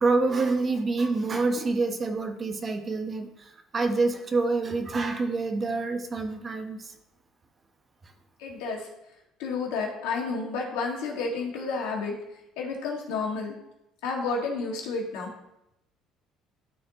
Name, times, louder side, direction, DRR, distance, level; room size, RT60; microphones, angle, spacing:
voice 1, 0.0-6.9, right 3 dB, 30° right, 6 dB, 0.9 m, -27 dB
voice 2, 8.4-8.9 9.4-12.1 12.6-13.5 14.0-15.3, left 4 dB, 90° left, -1 dB, 1.7 m, -30 dB
12.5 x 4.3 x 2.9 m, 0.86 s
cardioid pair, 95°, 0 cm